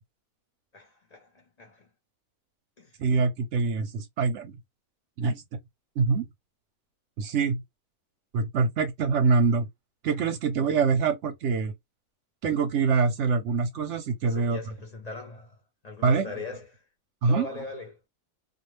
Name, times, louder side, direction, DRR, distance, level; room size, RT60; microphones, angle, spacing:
voice 1, 0.7-1.9 2.8-3.0 14.2-15.6 15.8-16.8 17.2-18.1, left 3 dB, 50° left, 0.5 m, -41 dB
voice 2, 3.0-4.6 5.2-5.4 6.0-6.3 7.2-7.6 8.3-9.7 10.0-11.7 12.4-14.6 16.0-16.3 17.2-17.5, right 5 dB, 60° right, 0.8 m, -24 dB
2.3 x 2.3 x 3.1 m
omnidirectional pair, 1.6 m